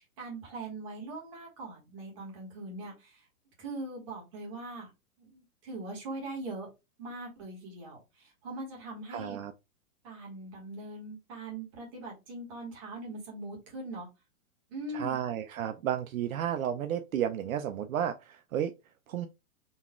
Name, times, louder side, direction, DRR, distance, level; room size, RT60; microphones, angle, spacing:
voice 1, 0.0-3.3 3.6-4.9 5.2-6.7 7.0-9.4 10.0-14.1 14.7-15.2, right 2 dB, 20° right, 1.3 m, -41 dB
voice 2, 9.1-9.5 14.9-18.7 19.1-19.3, right 10 dB, 65° right, 0.5 m, -32 dB
4.0 x 2.4 x 3.5 m
hypercardioid pair, 175°, 45 cm